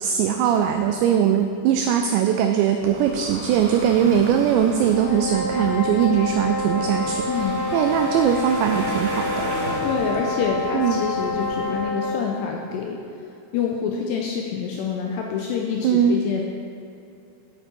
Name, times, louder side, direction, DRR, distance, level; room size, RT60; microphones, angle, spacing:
voice 1, 0.0-7.2 7.7-9.5 10.7-11.0 15.8-16.2, right 9 dB, 90° right, 6 dB, 2.5 m, -20 dB
sound 1, 2.8-11.8, right 1 dB, 55° right, 2.1 m, -34 dB
sound 2, 4.9-12.3, left 2 dB, 70° left, 2.3 m, -27 dB
voice 2, 7.3-7.6 9.8-13.0 13.5-16.4, left 6 dB, 85° left, 0 dB, 2.5 m, -26 dB
11.0 x 8.1 x 4.5 m, 2.7 s
omnidirectional pair, 5.5 m